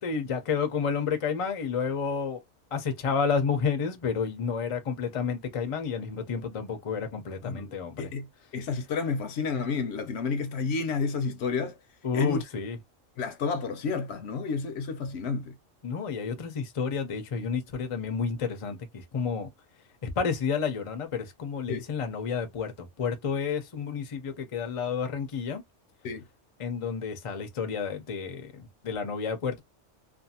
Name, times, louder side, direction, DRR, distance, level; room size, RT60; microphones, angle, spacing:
voice 1, 0.0-2.4 2.7-8.1 12.0-12.8 15.8-19.5 20.0-25.6 26.6-29.6, left 6 dB, 40° left, 0.4 m, -30 dB
voice 2, 7.4-8.3 8.5-11.8 12.1-12.4 13.2-15.5 21.7-21.8 26.0-26.2, left 5 dB, 65° left, 0.8 m, -30 dB
2.5 x 2.4 x 2.7 m
omnidirectional pair, 1.3 m